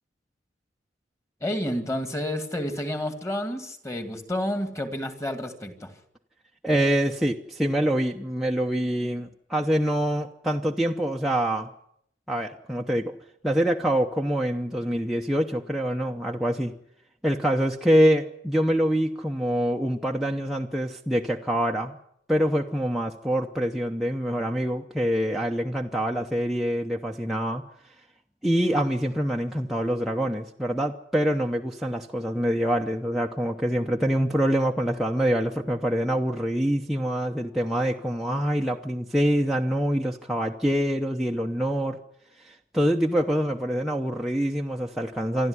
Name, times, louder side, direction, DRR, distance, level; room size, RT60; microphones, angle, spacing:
voice 1, 1.4-5.9, left 1 dB, 15° left, 8 dB, 2.1 m, -30 dB
voice 2, 6.6-11.7 12.3-13.1 13.4-16.7 17.2-22.0 22.3-27.6 28.4-42.0 42.4-45.5, equal, ahead, -1 dB, 0.8 m, -25 dB
27.0 x 12.0 x 9.7 m, 0.74 s
head